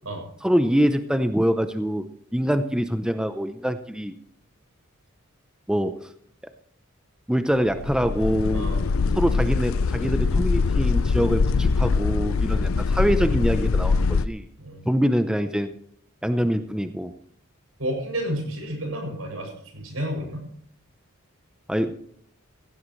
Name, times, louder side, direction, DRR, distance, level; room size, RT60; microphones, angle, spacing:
voice 1, 0.4-2.0 2.3-4.1 5.7-6.1 7.3-8.7 9.1-14.4 14.9-15.7 16.2-17.1 21.7-21.9, equal, 5° right, 9 dB, 0.6 m, -24 dB
sound 1, 7.7-14.3, left 4 dB, 70° left, 0.5 m, -23 dB
voice 2, 8.5-8.8 14.6-14.8 17.8-20.4, equal, 75° right, 2 dB, 7.3 m, -31 dB
17.0 x 16.5 x 3.2 m, 0.62 s
head